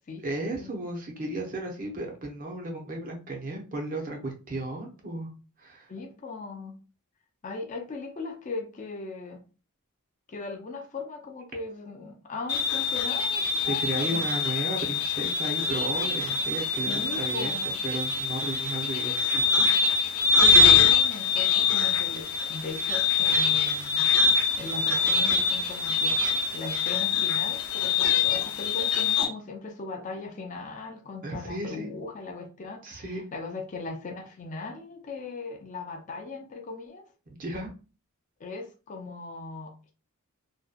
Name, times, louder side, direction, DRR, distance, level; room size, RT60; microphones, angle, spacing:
voice 1, 0.2-5.3 5.6-5.9 13.6-17.6 17.8-19.4 31.2-31.9 32.8-33.2 37.4-37.7, right 2 dB, 40° right, 0.6 m, -34 dB
voice 2, 5.9-6.8 7.4-9.4 10.3-14.2 16.9-17.8 20.5-24.1 24.6-37.1 38.4-39.9, left 3 dB, 35° left, 0.4 m, -38 dB
sound 1, 12.5-29.3, left 5 dB, 75° left, 0.7 m, -24 dB
2.6 x 2.2 x 2.3 m
head